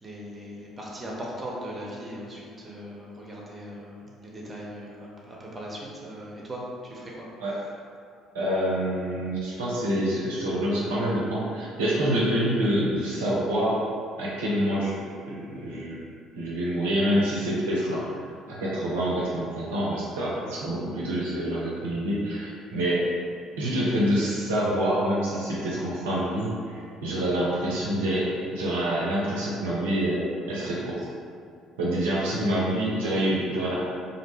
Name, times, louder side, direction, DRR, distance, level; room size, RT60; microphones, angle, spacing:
voice 1, 0.0-7.3, equal, 25° right, -4 dB, 0.6 m, -39 dB
voice 2, 8.3-13.8 14.2-14.9 15.3-16.0 16.4-18.0 18.5-23.1 23.6-31.0 31.8-33.8, equal, 75° right, -7 dB, 0.4 m, -26 dB
2.3 x 2.1 x 3.1 m, 2.3 s
figure-of-eight pair, 55°, 0 cm